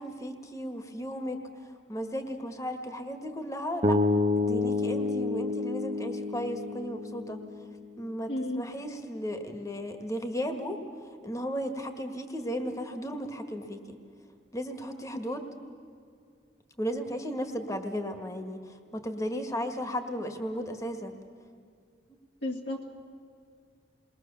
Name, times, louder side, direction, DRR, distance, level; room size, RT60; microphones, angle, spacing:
voice 1, 0.0-4.0 4.4-7.4 8.0-10.8 11.2-14.0 14.5-15.5 16.8-21.2, equal, 15° left, 5 dB, 1.7 m, -35 dB
sound 1, 3.8-8.0, left 3 dB, 30° right, 0.7 m, -29 dB
voice 2, 8.3-8.6 22.4-22.9, left 1 dB, 65° left, -1 dB, 2.2 m, -32 dB
29.0 x 22.0 x 7.0 m, 2.3 s
head